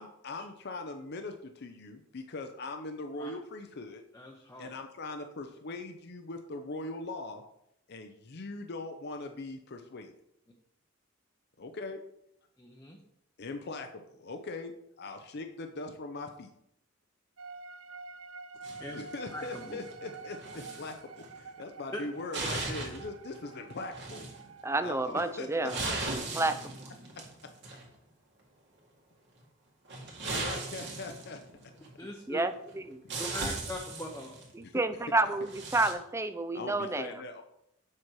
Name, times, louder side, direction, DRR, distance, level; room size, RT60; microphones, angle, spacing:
voice 1, 0.0-4.0 4.6-7.4 7.9-10.1 11.6-12.0 13.4-14.7 15.0-16.5 18.9-24.3 24.8-25.7 26.1-26.2 30.2-31.7 34.6-34.8 36.5-37.4, left 2 dB, 55° left, 5 dB, 0.6 m, -41 dB
voice 2, 4.1-4.7 12.6-13.0 18.8-19.0 19.3-19.9 21.9-22.0 22.4-22.5 32.0-32.4 33.2-34.3, left 1 dB, 15° left, 0 dB, 0.8 m, -41 dB
sound 1, 17.4-25.1, right 4 dB, 75° right, 0.6 m, -48 dB
sound 2, 18.6-20.0 20.3-20.9 21.2-21.4 22.0-23.1 23.3-23.4 23.9-24.5 25.2-27.9 29.9-31.9 32.7-32.8 33.1-34.5 35.3-35.9, right 3 dB, 55° right, 2.0 m, -38 dB
voice 3, 24.6-25.8 26.1-26.6 32.3-33.0 34.5-37.2, right 2 dB, 15° right, 11 dB, 0.5 m, -30 dB
7.5 x 5.9 x 4.7 m, 0.77 s
head